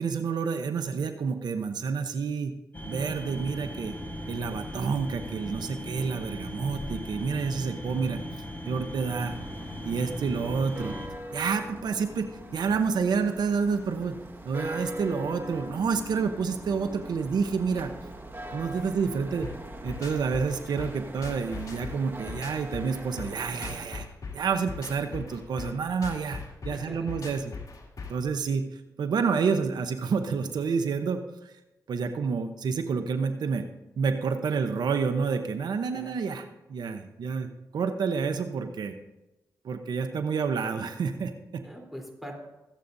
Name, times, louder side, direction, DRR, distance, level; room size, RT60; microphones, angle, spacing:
voice 1, 0.0-2.5 2.8-3.9 4.3-8.2 8.7-9.3 9.8-10.9 11.3-14.2 14.4-17.9 18.5-19.5 19.8-24.1 24.3-27.5 28.1-31.5 31.9-33.7 34.0-37.5 37.7-39.0 39.6-41.6, right 5 dB, 85° right, 7 dB, 0.8 m, -29 dB
sound 1, 2.7-11.1, equal, 25° left, 3.4 m, -38 dB
sound 2, 9.2-23.9, right 1 dB, 30° right, 1.5 m, -42 dB
sound 3, 19.4-28.3, left 4 dB, 55° left, 2.5 m, -40 dB
voice 2, 26.7-27.1 35.9-36.2 41.6-42.3, equal, ahead, 0 dB, 3.5 m, -42 dB
23.5 x 8.3 x 2.7 m, 1.0 s
cardioid pair, 65°, 7 cm